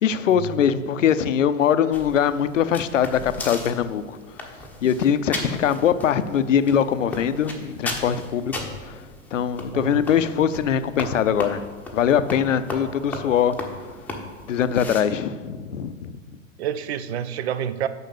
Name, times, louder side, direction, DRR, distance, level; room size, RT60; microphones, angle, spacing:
voice 1, 0.0-4.2 4.8-9.0 9.3-11.6 11.9-13.5 14.5-16.1, left 8 dB, 70° left, 12 dB, 0.6 m, -22 dB
sound 1, 1.9-15.0, left 2 dB, 5° left, 0.9 m, -36 dB
voice 2, 9.7-10.0 16.6-17.9, right 9 dB, 55° right, 13 dB, 0.6 m, -28 dB
6.7 x 5.8 x 6.6 m, 1.5 s
figure-of-eight pair, 110°, 40 cm